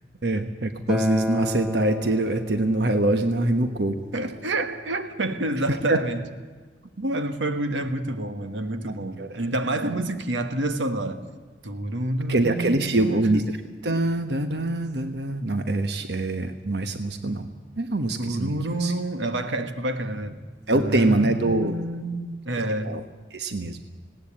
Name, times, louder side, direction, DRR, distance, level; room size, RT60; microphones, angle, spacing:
voice 1, 0.2-4.0 5.9-6.0 9.2-9.4 9.9-10.0 12.3-13.4 13.8-17.5 17.8-18.5 18.8-18.9 20.7-21.7 22.8-23.0 23.3-23.8, right 2 dB, 65° right, 1.1 m, -24 dB
Acoustic guitar, 0.9-6.1, left 1 dB, 5° right, 1.0 m, -33 dB
voice 2, 4.1-6.2 7.0-11.2 11.6-13.4 18.2-20.4 20.7-22.9, right 1 dB, 90° right, 1.5 m, -28 dB
19.0 x 17.5 x 8.8 m
head